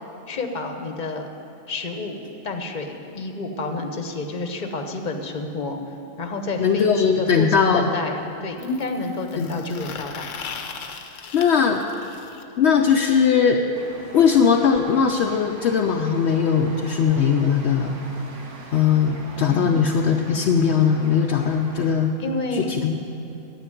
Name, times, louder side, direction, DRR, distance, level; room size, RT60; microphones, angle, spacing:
voice 1, 0.3-1.3 1.7-2.2 2.4-5.8 6.2-10.3 19.4-19.8 22.2-22.7, left 2 dB, 40° left, 5 dB, 1.0 m, -29 dB
voice 2, 6.6-8.0 9.4-9.8 11.3-11.8 12.6-13.6 14.1-17.9 18.7-22.1 22.5-23.0, left 6 dB, 65° left, 3 dB, 0.9 m, -19 dB
sound 1, 8.6-12.4 14.3-14.4 14.7-14.8 15.1-15.2 16.2-16.3, left 6 dB, 85° left, 1.2 m, -38 dB
sound 2, 13.7-22.0, right 1 dB, 75° right, 1.6 m, -41 dB
10.0 x 8.3 x 8.9 m, 3.0 s
omnidirectional pair, 1.3 m